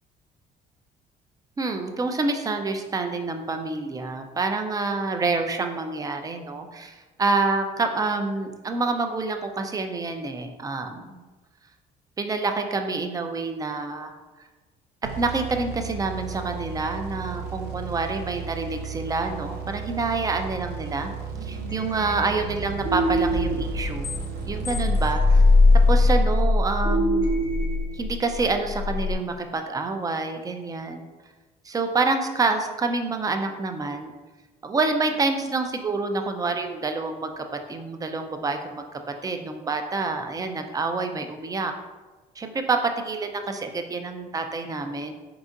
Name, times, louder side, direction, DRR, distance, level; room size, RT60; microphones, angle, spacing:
voice 1, 1.6-11.2 12.2-14.1 15.2-21.1 21.4-24.1 24.5-25.4 25.9-27.5 27.9-31.1 31.6-34.1 34.6-38.8 39.2-41.7 42.4-45.1, right 3 dB, 20° right, 6 dB, 0.4 m, -27 dB
sound 1, 15.0-26.7, right 6 dB, 80° right, 0.5 m, -35 dB
sound 2, 21.3-29.1, left 2 dB, 70° left, 1.1 m, -22 dB
4.3 x 3.8 x 2.5 m, 1.2 s
cardioid pair, 110°, 17 cm